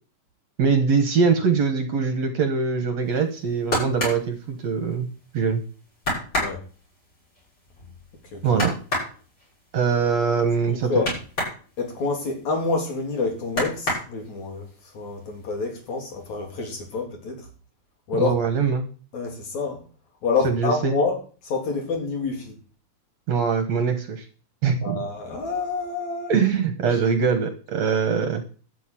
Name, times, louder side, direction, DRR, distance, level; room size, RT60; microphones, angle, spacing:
voice 1, 0.6-5.1 5.3-5.6 8.4-8.7 9.7-11.0 18.1-18.9 20.4-21.0 23.3-24.3 24.6-25.0 26.3-28.4, right 5 dB, 55° right, 2.2 m, -22 dB
sound 1, 3.3-5.2 5.6-5.7 6.0-11.6 12.0-13.1 13.4-14.5 15.0-15.6 15.9-16.6 16.9-17.0, left 1 dB, 30° left, 8.2 m, -29 dB
voice 2, 11.8-14.7 14.9-17.5 18.1-18.4 19.1-19.8 20.2-21.2 21.4-22.5 24.8-26.9, left 4 dB, 50° left, 4.2 m, -27 dB
12.5 x 6.9 x 9.2 m
omnidirectional pair, 4.2 m